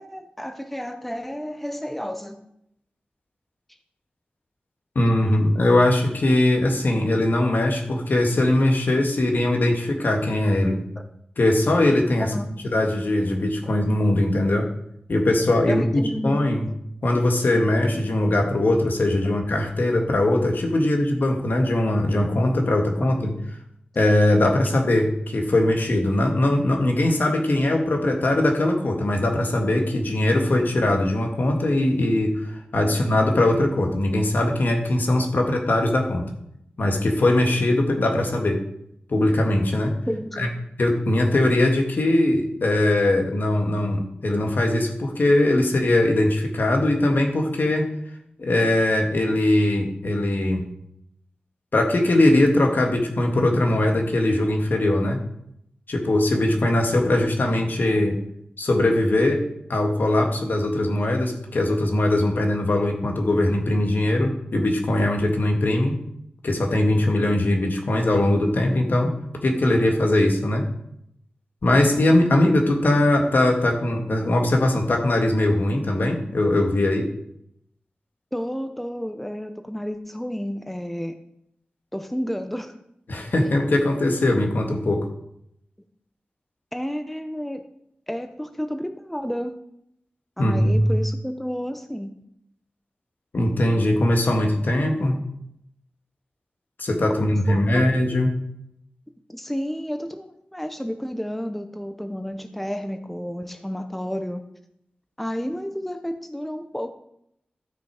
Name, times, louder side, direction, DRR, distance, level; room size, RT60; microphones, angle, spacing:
voice 1, 0.0-2.4 11.0-11.1 12.2-12.8 15.7-16.7 40.0-40.5 78.3-81.1 81.9-82.7 86.7-87.6 88.1-89.5 90.4-92.1 97.5-97.8 99.3-104.4 105.2-106.9, equal, 5° left, 7 dB, 0.9 m, -31 dB
voice 2, 5.0-10.8 11.4-12.3 12.7-14.7 15.1-16.7 17.0-23.3 24.0-36.2 36.8-38.6 39.1-39.9 40.4-40.5 40.8-47.9 48.4-50.6 51.7-55.2 55.9-58.2 58.6-59.4 59.7-66.0 66.4-69.1 69.4-70.6 71.6-77.1 83.1-85.0 90.4-91.0 93.3-95.2 96.8-98.4, left 1 dB, 65° left, 2 dB, 2.0 m, -21 dB
12.5 x 6.0 x 5.0 m, 0.75 s
wide cardioid pair, 60°, 3 cm